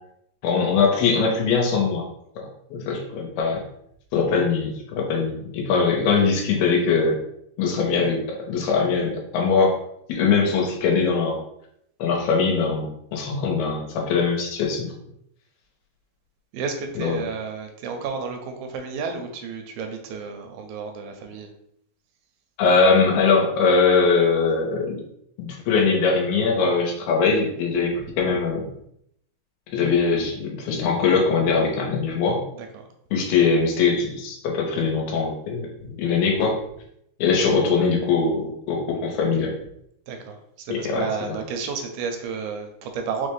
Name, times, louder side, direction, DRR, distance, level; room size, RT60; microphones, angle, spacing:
voice 1, 0.4-2.0 2.4-3.6 4.1-7.2 7.6-9.8 10.1-11.4 12.0-14.9 17.0-17.2 22.6-25.0 25.4-28.7 29.7-32.4 33.1-35.7 36.0-36.6 37.2-39.6 40.7-41.4, left 5 dB, 80° left, 0 dB, 2.7 m, -21 dB
voice 2, 16.5-21.5 32.6-32.9 40.1-43.3, right 5 dB, 80° right, 5 dB, 2.3 m, -32 dB
6.0 x 2.1 x 3.2 m, 0.73 s
omnidirectional pair, 4.5 m